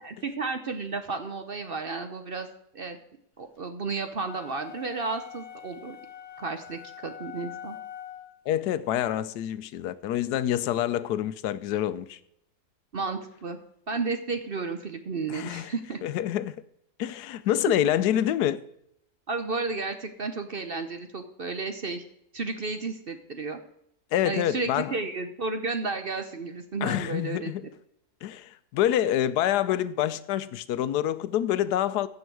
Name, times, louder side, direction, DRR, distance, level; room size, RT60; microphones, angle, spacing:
voice 1, 0.0-2.5 2.7-3.0 3.4-6.0 6.4-7.8 12.9-13.6 13.9-16.0 17.7-17.8 19.3-22.0 22.3-23.6 24.2-27.5, right 4 dB, 45° right, 0.8 m, -32 dB
sound 1, 4.2-8.4, left 10 dB, 70° left, 1.9 m, -44 dB
voice 2, 8.5-12.2 15.3-15.7 16.0-16.6 17.0-18.6 24.1-24.9 26.8-27.7 28.2-32.1, left 11 dB, 90° left, 1.2 m, -27 dB
15.0 x 6.3 x 4.7 m
omnidirectional pair, 1.7 m